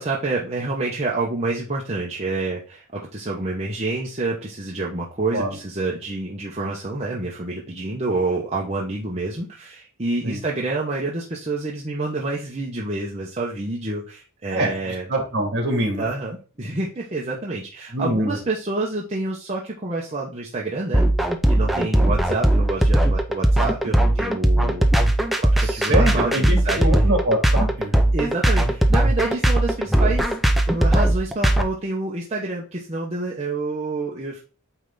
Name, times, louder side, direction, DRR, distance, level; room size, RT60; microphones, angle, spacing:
voice 1, 0.0-15.1 16.0-25.1 25.4-26.8 28.1-30.3 30.7-34.4, right 2 dB, 30° right, -3 dB, 0.9 m, -28 dB
voice 2, 14.5-16.0 17.9-18.4 25.6-27.9, right 1 dB, 50° right, 1 dB, 2.4 m, -24 dB
sound 1, 20.9-31.6, right 1 dB, ahead, 0.5 m, -18 dB
8.7 x 3.4 x 3.9 m, 0.35 s
head